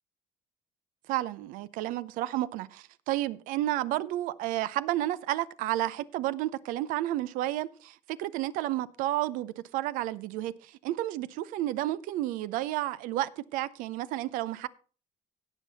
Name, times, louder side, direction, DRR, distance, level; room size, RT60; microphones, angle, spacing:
voice 1, 1.1-14.7, right 15 dB, 75° right, 0.6 m, -31 dB
17.0 x 5.8 x 4.1 m
supercardioid pair, 75°, 14 cm